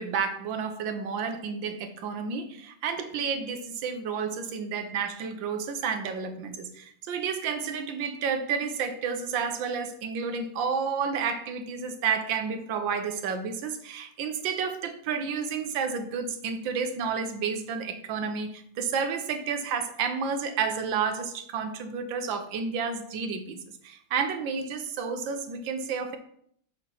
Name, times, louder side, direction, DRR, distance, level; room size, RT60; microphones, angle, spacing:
voice 1, 0.0-26.2, right 6 dB, 80° right, 7 dB, 1.6 m, -31 dB
7.1 x 4.4 x 5.7 m, 0.65 s
omnidirectional pair, 2.1 m